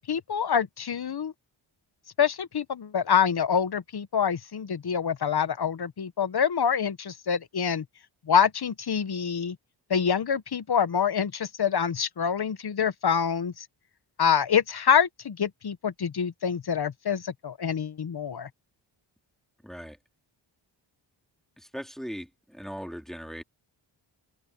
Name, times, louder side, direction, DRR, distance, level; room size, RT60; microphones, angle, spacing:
voice 1, 0.1-1.3 2.2-7.8 8.3-9.6 9.9-13.7 14.2-18.5, left 7 dB, 50° left, 1.2 m, -26 dB
voice 2, 19.6-20.0 21.7-23.4, equal, ahead, 3.4 m, -38 dB
open air
cardioid pair, 55°, 49 cm